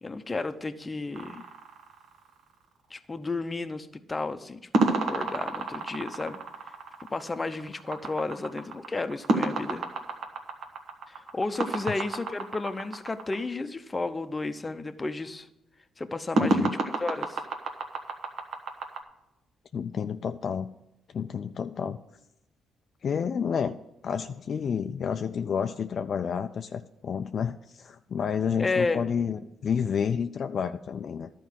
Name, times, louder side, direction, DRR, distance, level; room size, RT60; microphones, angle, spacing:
voice 1, 0.0-1.4 2.9-6.4 7.1-9.8 11.1-15.5 16.0-17.4 28.6-29.1, left 3 dB, 25° left, 9 dB, 0.7 m, -32 dB
sound 1, 1.2-2.5 4.7-13.4 16.4-19.0, right 2 dB, 60° right, 1.5 m, -30 dB
voice 2, 16.4-16.7 19.7-20.7 21.1-22.0 23.0-23.8 24.0-31.3, left 7 dB, 55° left, 8 dB, 0.4 m, -30 dB
11.5 x 4.6 x 7.4 m, 0.91 s
cardioid pair, 90°, 0 cm